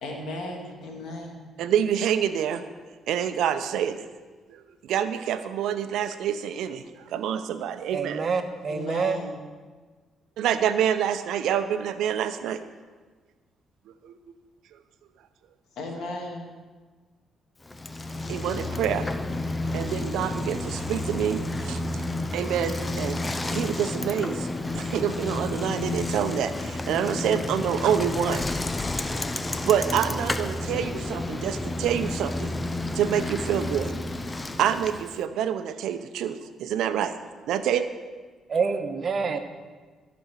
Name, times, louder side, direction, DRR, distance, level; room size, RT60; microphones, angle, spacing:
voice 1, 0.0-1.5 8.7-9.4 15.8-16.5, left 2 dB, 75° left, 0 dB, 2.6 m, -35 dB
voice 2, 1.6-2.6 3.1-4.0 4.9-6.8 7.1-8.2 10.4-12.6 18.3-19.1 19.7-21.8 22.3-23.2 23.5-24.5 24.7-28.5 29.6-32.5 32.9-33.9 34.6-37.2 37.5-37.8, right 9 dB, 80° right, 10 dB, 0.7 m, -27 dB
voice 3, 7.9-9.2 38.5-39.4, right 5 dB, 45° right, 7 dB, 1.1 m, -27 dB
Bicycle, 17.6-35.2, left 2 dB, 20° left, 0.7 m, -31 dB
14.0 x 5.2 x 7.4 m, 1.4 s
cardioid pair, 90°, 0 cm